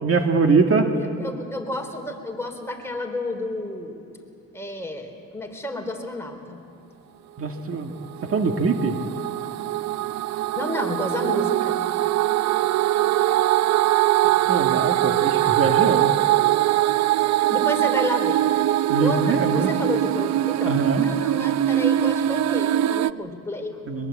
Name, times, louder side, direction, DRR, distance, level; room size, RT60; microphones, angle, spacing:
voice 1, 0.0-0.9 7.4-7.9 8.3-9.0 14.5-16.1 18.9-19.7 20.7-21.1 23.9-24.1, right 4 dB, 45° right, 4 dB, 1.8 m, -22 dB
voice 2, 0.9-4.0 4.5-6.6 10.6-11.8 17.5-18.4 19.0-23.8, left 1 dB, 10° left, 3 dB, 3.7 m, -31 dB
sound 1, 8.0-23.1, right 14 dB, 65° right, 0.5 m, -22 dB
23.0 x 22.0 x 8.4 m, 2.7 s
cardioid pair, 90°, 30 cm